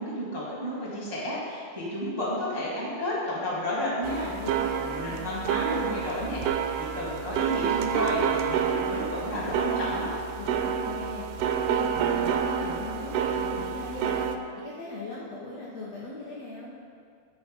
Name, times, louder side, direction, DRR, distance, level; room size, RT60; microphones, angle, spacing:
voice 1, 0.0-4.3 4.7-6.6 6.9-10.1, equal, 15° right, -7 dB, 1.0 m, -31 dB
sound 1, 4.0-14.4, right 7 dB, 85° right, 2.6 m, -29 dB
voice 2, 4.3-5.5 10.4-14.2 14.6-16.7, left 2 dB, 65° left, -6 dB, 1.8 m, -39 dB
13.5 x 6.3 x 5.4 m, 2.2 s
omnidirectional pair, 4.6 m